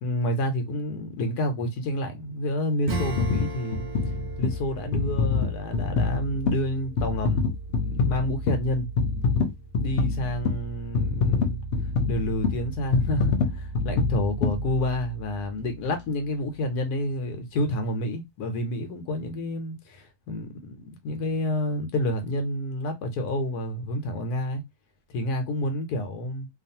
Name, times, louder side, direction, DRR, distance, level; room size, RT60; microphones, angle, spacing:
voice 1, 0.0-3.8 4.4-8.9 9.8-11.6 12.1-24.6 25.1-26.5, left 1 dB, 85° left, 1.3 m, -29 dB
Acoustic guitar / Strum, 2.8-7.1, right 5 dB, 50° right, 0.6 m, -39 dB
sound 1, 2.9-15.3 15.8-16.0, left 4 dB, 60° left, 0.8 m, -27 dB
2.6 x 2.5 x 2.6 m
omnidirectional pair, 1.6 m